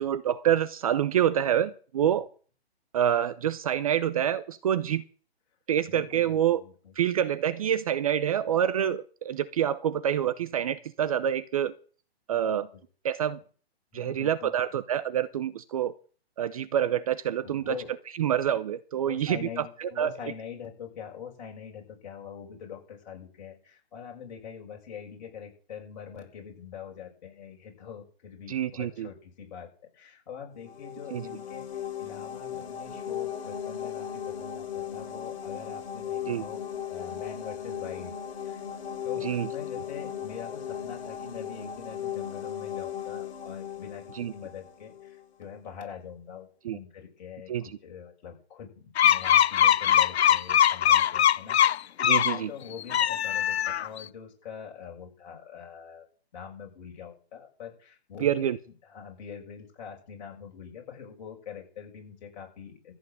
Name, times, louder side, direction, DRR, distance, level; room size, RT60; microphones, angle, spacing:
voice 1, 0.0-2.3 2.9-5.0 5.7-6.6 7.0-11.7 12.3-12.7 13.0-13.4 13.9-15.9 16.4-17.7 18.2-20.1 28.5-29.1 31.1-31.3 36.3-36.4 39.2-39.5 44.1-44.3 46.6-46.8 47.5-47.7 52.0-52.5 58.2-58.6, right 10 dB, 35° right, 15 dB, 0.7 m, -27 dB
voice 2, 5.9-6.9 12.7-12.8 13.9-14.5 17.4-18.0 19.0-38.6 39.0-44.0 44.3-47.5 47.8-56.1 56.3-58.6 58.8-62.9, left 7 dB, 45° left, 0 dB, 6.8 m, -44 dB
sound 1, 30.6-45.3, left 9 dB, 60° left, 4.3 m, -37 dB
sound 2, 49.0-52.4 52.8-54.0, left 10 dB, 80° left, 0.5 m, -22 dB
15.0 x 6.3 x 9.3 m, 0.41 s
hypercardioid pair, 155°, 32 cm